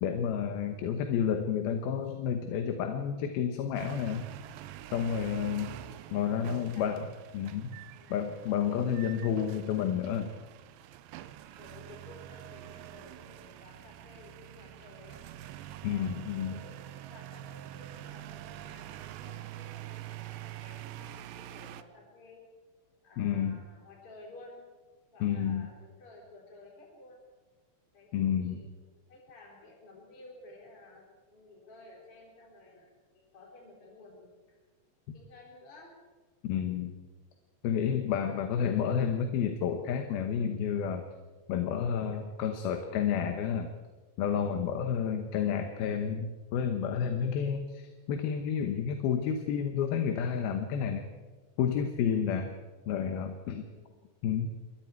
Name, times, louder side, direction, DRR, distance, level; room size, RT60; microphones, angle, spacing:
voice 1, 0.0-4.3 4.9-5.7 6.1-7.1 7.3-7.8 8.1-10.3 15.8-16.6 23.2-23.6 25.2-25.7 28.1-28.6 36.4-36.9 37.6-41.0 41.5-43.7 44.2-51.1 51.6-52.5 52.9-53.6 54.2-54.5, left 8 dB, 85° left, 6 dB, 3.1 m, -30 dB
voice 2, 0.6-1.2 5.5-6.1 6.5-7.1 7.9-8.3 11.6-15.3 15.9-22.4 23.0-24.6 25.1-27.2 27.9-28.7 29.1-34.6 35.1-36.0 53.6-54.0, left 2 dB, 35° left, -2 dB, 5.1 m, -54 dB
sound 1, 3.8-21.8, right 13 dB, 80° right, 2.5 m, -46 dB
27.5 x 22.5 x 4.6 m, 1.3 s
omnidirectional pair, 4.2 m